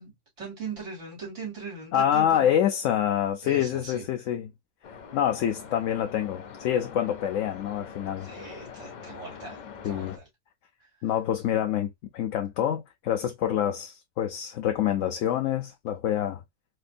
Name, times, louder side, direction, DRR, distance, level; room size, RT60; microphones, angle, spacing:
voice 1, 0.0-2.6 3.4-4.1 8.2-9.6 9.8-10.2, right 4 dB, 70° right, 2.5 m, -39 dB
voice 2, 1.9-4.5 5.1-8.3 9.8-10.2 11.0-16.4, left 10 dB, 75° left, 1.0 m, -26 dB
sound 1, 4.8-10.2, left 6 dB, 60° left, 0.4 m, -44 dB
4.3 x 2.6 x 2.3 m
omnidirectional pair, 1.3 m